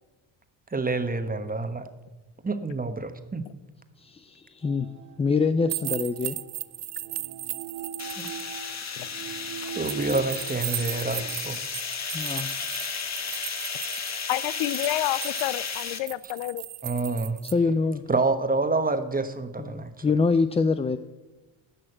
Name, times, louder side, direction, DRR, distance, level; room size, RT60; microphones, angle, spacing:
voice 1, 0.7-1.8 2.4-3.4 8.2-8.3 9.8-11.6 16.8-17.4 18.1-20.0, right 3 dB, 15° right, 9 dB, 1.2 m, -27 dB
voice 2, 4.0-4.9 5.2-6.4 12.1-12.5 13.0-13.4 17.4-18.0 19.6-21.0, left 4 dB, 15° left, 10 dB, 0.3 m, -25 dB
sound 1, 4.6-11.4, right 8 dB, 80° right, 1.2 m, -41 dB
sound 2, 5.7-8.4 9.8-17.5, right 15 dB, 55° right, 0.7 m, -36 dB
sound 3, 8.0-16.0, left 6 dB, 35° left, 1.4 m, -34 dB
voice 3, 14.3-16.6, left 15 dB, 70° left, 18 dB, 0.6 m, -29 dB
11.0 x 6.3 x 8.9 m, 1.1 s
supercardioid pair, 80°, 49 cm